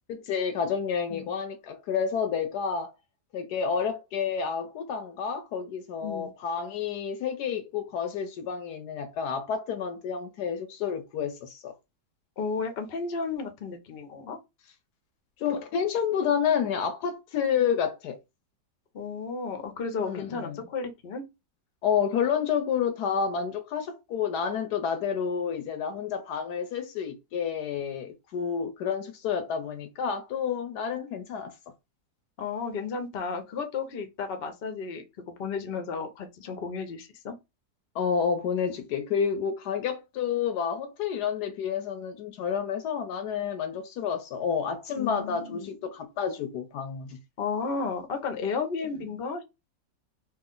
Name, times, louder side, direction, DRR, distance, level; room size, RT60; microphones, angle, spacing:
voice 1, 0.1-2.9 3.3-11.7 15.4-18.2 20.0-20.6 21.8-31.5 37.9-47.2, left 7 dB, 70° left, 1.1 m, -29 dB
voice 2, 12.4-14.4 18.9-21.2 32.4-35.0 35.4-37.4 44.9-45.7 47.4-49.4, left 5 dB, 50° left, 0.7 m, -33 dB
3.1 x 2.5 x 3.7 m
omnidirectional pair, 1.9 m